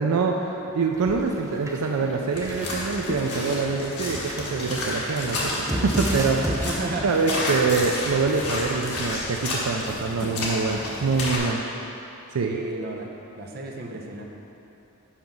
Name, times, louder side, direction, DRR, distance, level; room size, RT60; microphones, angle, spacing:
voice 1, 0.0-6.7 7.0-11.6 12.3-12.6, right 4 dB, 80° right, 2 dB, 0.4 m, -25 dB
sound 1, 1.0-1.4 1.7-1.9 2.4-2.9 3.2-3.6 4.1-6.6, right 1 dB, 15° right, 0.5 m, -30 dB
sound 2, 1.5-11.3, left 1 dB, 30° left, 0.6 m, -43 dB
sound 3, 2.3-11.4, left 2 dB, 80° left, 1.5 m, -31 dB
voice 2, 6.5-7.2 12.4-13.1 13.4-14.2, right 2 dB, 45° right, -1 dB, 0.7 m, -33 dB
5.7 x 5.2 x 5.9 m, 2.9 s
head